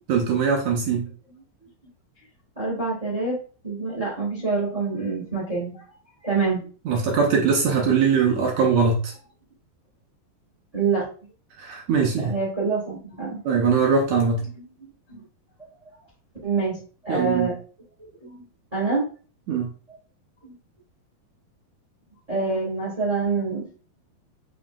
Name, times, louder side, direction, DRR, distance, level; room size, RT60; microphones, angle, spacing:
voice 1, 0.1-1.1 6.8-9.1 11.6-12.4 13.4-14.4 17.1-17.5 19.5-19.7, right 5 dB, 75° right, 0 dB, 1.7 m, -21 dB
voice 2, 2.5-3.4 3.6-5.8 6.2-6.7 10.7-11.1 12.2-13.4 14.6-14.7 15.1-15.2 16.4-16.8 17.0-17.5 18.0-18.4 18.7-19.1 20.4-20.5 22.3-23.7, right 4 dB, 60° right, -5 dB, 0.4 m, -26 dB
5.5 x 3.8 x 2.4 m, 0.39 s
omnidirectional pair, 4.2 m